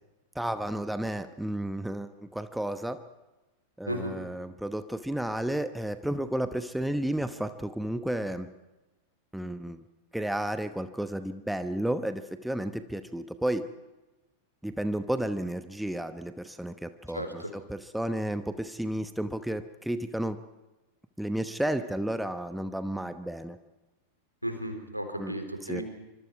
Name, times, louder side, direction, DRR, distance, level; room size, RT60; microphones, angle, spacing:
voice 1, 0.3-3.0 3.8-8.5 9.3-9.8 10.1-13.7 14.6-20.4 21.2-23.6 25.2-25.3 25.7-25.8, right 1 dB, ahead, 10 dB, 1.1 m, -32 dB
voice 2, 17.1-17.5 24.4-25.8, equal, 90° right, 6 dB, 3.9 m, -34 dB
25.0 x 25.0 x 4.8 m, 1.1 s
figure-of-eight pair, 90°, 0 cm